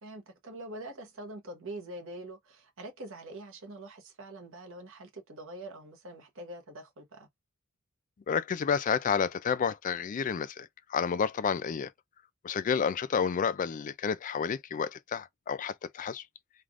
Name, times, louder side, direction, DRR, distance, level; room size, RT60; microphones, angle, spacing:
voice 1, 0.0-7.3, right 1 dB, 65° right, 1.0 m, -44 dB
voice 2, 8.3-11.9 12.4-16.2, left 6 dB, 35° left, 0.3 m, -30 dB
3.3 x 2.3 x 2.4 m
head